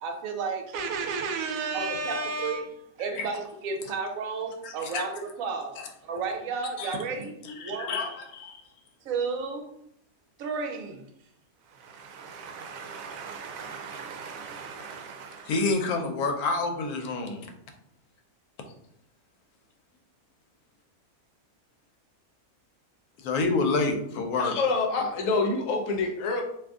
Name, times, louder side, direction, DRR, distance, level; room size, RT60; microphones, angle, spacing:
voice 1, 0.0-7.3 7.6-8.0 9.0-9.7 10.4-11.0 11.7-15.5, right 4 dB, 75° right, 1.0 m, -33 dB
voice 2, 4.6-5.1 5.8-5.9 6.8-7.0 7.4-8.6 15.4-17.5 23.2-24.6, left 3 dB, 90° left, 1.1 m, -28 dB
voice 3, 24.4-26.4, left 3 dB, 65° left, 1.0 m, -26 dB
2.7 x 2.5 x 3.5 m
omnidirectional pair, 1.5 m